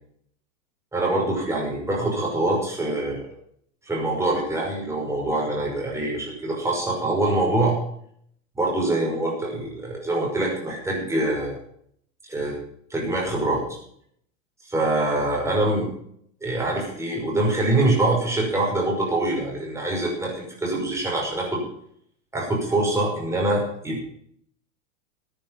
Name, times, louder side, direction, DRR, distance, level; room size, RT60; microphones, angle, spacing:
voice 1, 0.9-3.2 3.8-7.8 8.6-11.6 12.3-12.5 12.9-13.6 14.7-15.9 16.4-21.6 22.3-24.1, right 2 dB, 5° right, -2 dB, 5.7 m, -24 dB
14.0 x 9.6 x 5.5 m, 0.66 s
supercardioid pair, 140°, 39 cm